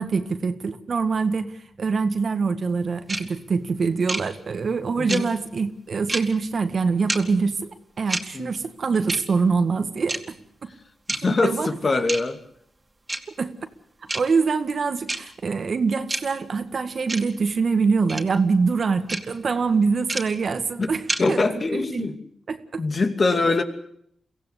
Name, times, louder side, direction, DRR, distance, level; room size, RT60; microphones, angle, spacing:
voice 1, 0.0-10.4 10.6-10.7 11.3-11.7 13.4-13.5 14.1-21.4 21.7-22.1 22.5-22.8, right 4 dB, 60° right, 1.8 m, -24 dB
sound 1, 3.1-3.2 4.1-4.2 5.1-5.2 6.1-6.2 7.1-7.2 8.1-8.2 9.1-9.2 10.1-10.2 11.1-11.2 12.1-12.2 13.1-13.2 14.1-14.2 15.1-15.2 16.1-16.2 17.1-17.2 18.1-18.2 19.1-19.2 20.1-20.2 21.1-21.2, right 2 dB, 30° right, 2.7 m, -26 dB
voice 2, 11.1-12.4 20.8-20.9 21.2-22.2 22.8-23.6, left 3 dB, 50° left, 2.6 m, -23 dB
23.5 x 16.0 x 8.4 m
supercardioid pair, 50°, 0 cm